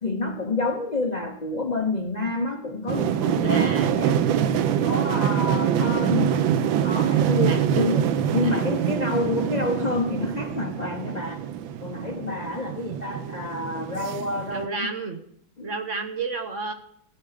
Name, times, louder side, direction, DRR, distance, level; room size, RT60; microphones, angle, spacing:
voice 1, 0.0-8.1 8.3-11.4 11.8-14.9 15.6-15.7, left 2 dB, 70° left, 5 dB, 0.4 m, -28 dB
sound 1, 2.9-14.7, right 9 dB, 85° right, 1.5 m, -25 dB
voice 2, 3.4-4.0 7.5-8.0 8.4-8.8 14.5-15.2 15.6-16.7, right 4 dB, 45° right, 6 dB, 1.1 m, -31 dB
15.0 x 9.4 x 5.0 m, 0.70 s
omnidirectional pair, 2.1 m